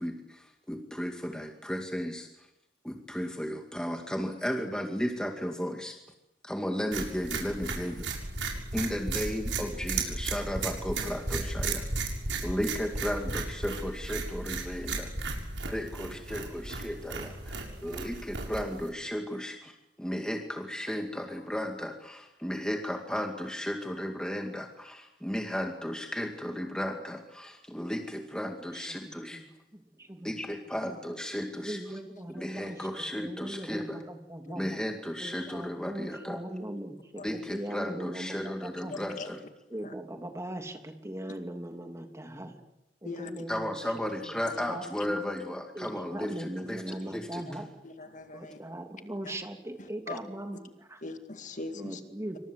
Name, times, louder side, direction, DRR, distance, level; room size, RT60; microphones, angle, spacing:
voice 1, 0.0-2.5 2.8-6.0 6.4-8.1 8.7-11.9 12.4-15.1 15.7-29.4 30.2-32.0 32.3-34.0 34.6-36.4 37.2-39.4 43.5-47.6, equal, 5° left, 3 dB, 2.2 m, -34 dB
sound 1, 6.9-18.9, right 3 dB, 85° right, 7.1 m, -34 dB
voice 2, 28.7-29.5 29.7-30.3 31.5-32.8 33.2-34.6 35.2-39.1 39.7-42.6 43.0-44.1 44.7-45.2 45.7-47.7 48.3-51.1 51.7-52.4, right 1 dB, 15° right, 5 dB, 3.0 m, -40 dB
voice 3, 47.8-48.6 50.1-50.2 51.0-52.0, left 3 dB, 45° left, 7 dB, 2.2 m, -40 dB
27.5 x 25.0 x 8.0 m, 0.89 s
head